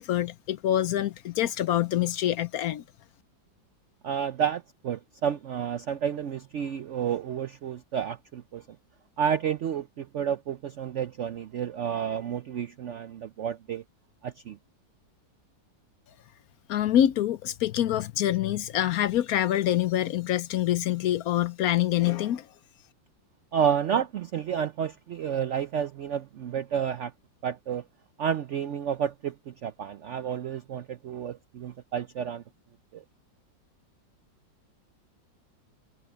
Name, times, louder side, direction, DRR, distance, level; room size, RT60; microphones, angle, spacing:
voice 1, 0.0-2.8 16.7-22.5, left 12 dB, 70° left, 0.9 m, -26 dB
voice 2, 4.0-8.6 9.2-13.8 14.2-14.6 23.5-27.1 27.4-27.8 28.2-32.4 32.9-33.0, right 8 dB, 80° right, 0.6 m, -30 dB
omnidirectional pair, 2.0 m